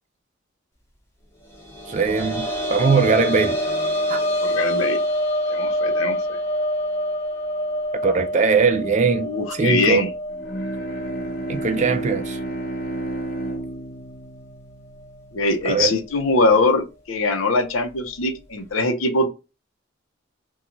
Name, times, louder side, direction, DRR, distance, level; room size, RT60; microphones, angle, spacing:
sound 1, 1.5-13.0 13.3-13.4 15.0-15.1, equal, 15° left, 0.8 m, -26 dB
voice 1, 1.9-3.6 4.1-4.2 8.0-10.0 11.5-12.4 15.6-16.0, right 5 dB, 35° right, 0.4 m, -20 dB
voice 2, 4.4-5.0 5.5-6.4 9.2-10.1 15.3-19.3, left 2 dB, 90° left, 0.7 m, -22 dB
Bowed string instrument, 10.3-15.7, right 1 dB, 50° left, 0.8 m, -31 dB
2.6 x 2.3 x 2.9 m
head